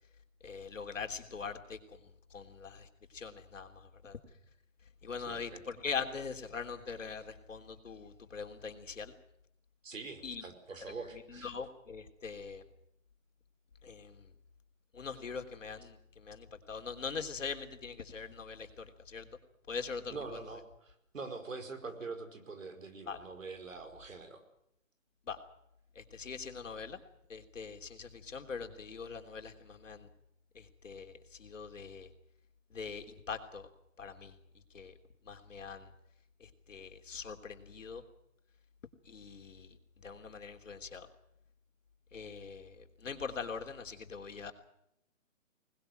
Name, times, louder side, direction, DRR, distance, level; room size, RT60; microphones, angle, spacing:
voice 1, 0.4-1.8 2.3-4.2 5.0-9.1 10.2-10.4 11.3-12.6 13.8-14.3 14.9-19.3 19.7-20.2 23.1-23.2 25.3-25.4 25.9-27.0 27.3-30.1 30.5-32.1 32.7-33.7 34.0-34.3 34.7-34.9 35.2-35.9 36.4-38.0 39.0-39.8 40.0-41.1 42.1-44.5, left 5 dB, 70° left, 5 dB, 3.3 m, -42 dB
voice 2, 5.2-5.6 9.8-11.5 20.1-24.4, right 4 dB, 75° right, 8 dB, 5.1 m, -44 dB
24.0 x 20.0 x 7.7 m, 0.79 s
hypercardioid pair, 175°, 39 cm